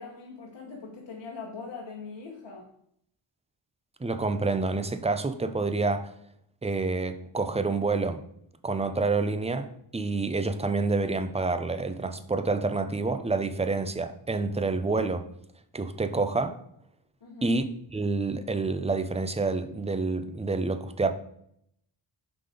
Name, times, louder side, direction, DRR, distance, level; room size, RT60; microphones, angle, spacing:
voice 1, 0.0-2.7 17.2-17.5, left 4 dB, 60° left, -2 dB, 1.2 m, -41 dB
voice 2, 4.0-6.1 6.6-8.2 8.6-9.7 9.9-15.3 15.7-16.6 17.4-21.1, right 3 dB, 15° right, 9 dB, 0.5 m, -28 dB
5.6 x 4.0 x 4.9 m, 0.71 s
wide cardioid pair, 80°, 49 cm